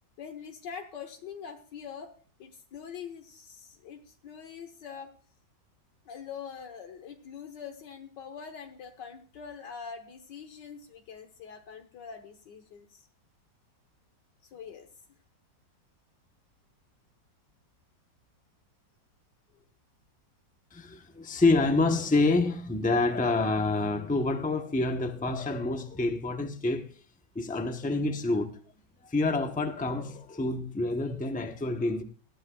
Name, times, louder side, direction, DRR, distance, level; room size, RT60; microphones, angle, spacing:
voice 1, 0.2-2.1 2.4-5.1 6.0-13.1 14.5-14.9 19.5-19.6, left 7 dB, 75° left, 1.7 m, -44 dB
voice 2, 20.7-26.9 27.3-28.6 29.0-32.0, left 3 dB, 10° left, 0.5 m, -27 dB
19.0 x 13.0 x 2.3 m
omnidirectional pair, 2.0 m